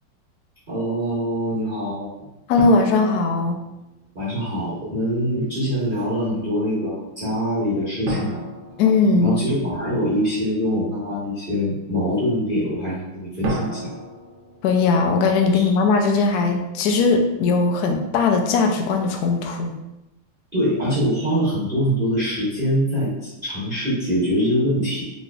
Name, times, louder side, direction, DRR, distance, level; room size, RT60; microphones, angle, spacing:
voice 1, 0.7-2.3 4.1-8.4 9.2-13.9 15.5-15.7 20.5-25.0, equal, 35° right, -10 dB, 1.0 m, -24 dB
voice 2, 2.5-3.6 8.8-9.7 14.6-19.7, left 4 dB, 70° left, 3 dB, 0.9 m, -19 dB
sound 1, 2.6-4.2 8.1-9.9 13.4-15.7, right 2 dB, 80° right, 1.4 m, -32 dB
3.9 x 3.1 x 2.3 m, 0.93 s
omnidirectional pair, 2.1 m